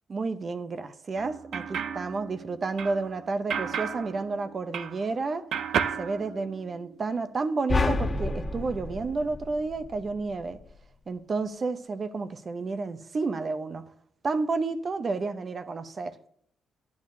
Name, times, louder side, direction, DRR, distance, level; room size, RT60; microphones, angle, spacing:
voice 1, 0.1-5.5 6.0-10.6 11.1-13.9 14.2-16.2, right 3 dB, 40° right, 0.8 m, -31 dB
sound 1, 1.2-5.2 5.5-7.0, right 7 dB, 70° right, 0.6 m, -33 dB
sound 2, 7.7-10.1, left 3 dB, 25° left, 1.8 m, -29 dB
11.5 x 9.5 x 2.7 m
cardioid pair, 90°, 0 cm